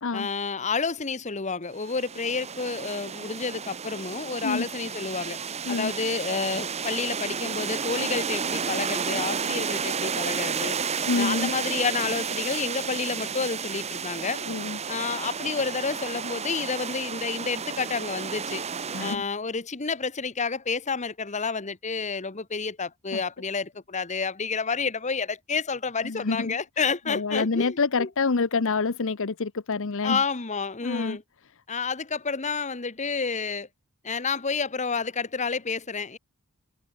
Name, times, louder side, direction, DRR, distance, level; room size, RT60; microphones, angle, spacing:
voice 1, 0.1-5.4 5.7-10.8 11.1-14.4 14.9-18.6 19.0-28.1 30.0-31.2 31.7-33.7 34.0-36.2, left 4 dB, 30° left, 1.2 m, -30 dB
sound 1, 1.7-19.2, right 6 dB, 30° right, 0.9 m, -32 dB
voice 2, 11.1-11.5 14.5-14.8 18.9-19.2 23.1-23.2 26.0-26.6 27.1-30.2 30.8-31.2, left 4 dB, 60° left, 0.8 m, -27 dB
head